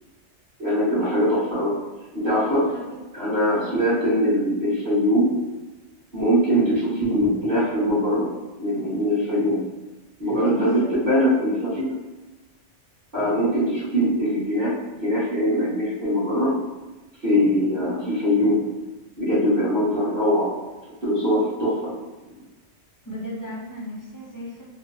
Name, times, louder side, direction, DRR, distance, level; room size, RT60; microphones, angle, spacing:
voice 1, 0.6-1.7 2.1-2.6 3.1-5.3 6.1-8.3 8.6-9.6 10.2-11.9 13.1-16.5 17.2-18.6 19.2-20.5 21.0-22.0, equal, 40° right, -13 dB, 1.5 m, -22 dB
voice 2, 10.3-11.0 17.8-18.0 20.0-20.1 23.0-24.6, left 1 dB, 25° left, -6 dB, 0.5 m, -36 dB
3.1 x 2.1 x 3.1 m, 1.2 s
omnidirectional pair, 1.2 m